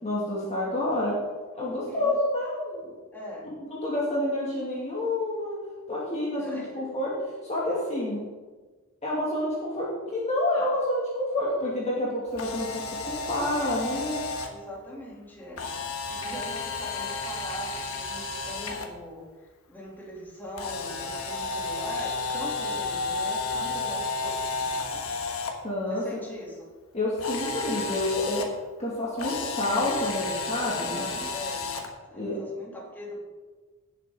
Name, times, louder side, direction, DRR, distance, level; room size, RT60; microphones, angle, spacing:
voice 1, 0.0-1.2 1.5-2.9 3.6-5.6 5.9-7.1 7.4-8.2 9.0-14.2 25.6-26.0 26.9-28.4 28.8-31.1 32.1-32.4, left 1 dB, 30° left, -6 dB, 2.3 m, -28 dB
voice 2, 1.6-2.1 3.1-3.5 6.3-7.0 14.4-15.6 16.1-19.3 19.7-25.0 25.9-26.6 30.6-31.7 32.1-33.2, equal, 10° left, -5 dB, 2.9 m, -41 dB
Camera, 12.3-14.5 15.6-18.9 20.6-25.5 27.2-28.5 29.2-31.9, left 4 dB, 65° left, 1.3 m, -32 dB
17.0 x 7.5 x 3.8 m, 1.3 s
head